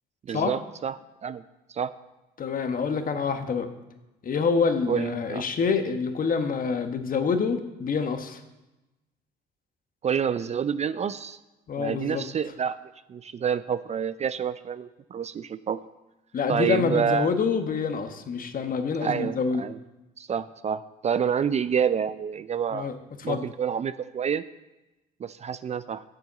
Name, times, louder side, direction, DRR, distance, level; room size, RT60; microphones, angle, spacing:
voice 1, 0.2-1.0 1.2-1.4 1.7-1.9 4.9-5.5 10.0-11.4 11.8-12.8 13.1-15.8 16.5-17.3 19.0-19.8 20.2-22.9 23.2-24.4 25.2-26.0, right 7 dB, 35° right, 14 dB, 0.4 m, -28 dB
voice 2, 2.4-3.7 4.2-8.4 11.7-12.2 16.3-19.6 22.7-22.9 23.3-23.5, left 5 dB, 45° left, 7 dB, 1.3 m, -26 dB
7.9 x 7.0 x 7.4 m, 1.0 s
supercardioid pair, 70°, 19 cm